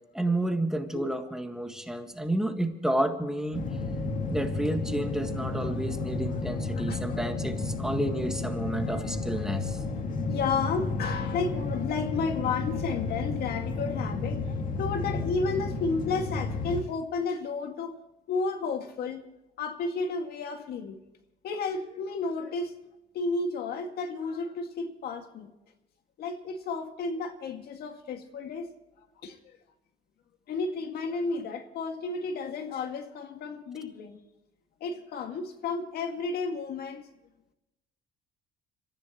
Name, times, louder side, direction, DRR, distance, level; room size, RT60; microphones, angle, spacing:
voice 1, 0.1-3.6 4.3-9.8, right 1 dB, 5° right, 1.7 m, -30 dB
sound 1, 3.5-16.8, left 3 dB, 50° left, 2.3 m, -32 dB
voice 2, 6.8-7.2 10.3-14.4 14.7-18.0 18.3-19.2 19.6-21.0 21.4-22.7 23.1-25.5 26.2-28.7 29.2-29.6 30.5-34.2 34.8-37.1, left 4 dB, 65° left, 2.1 m, -32 dB
25.5 x 14.5 x 3.1 m
cardioid pair, 110°, 17 cm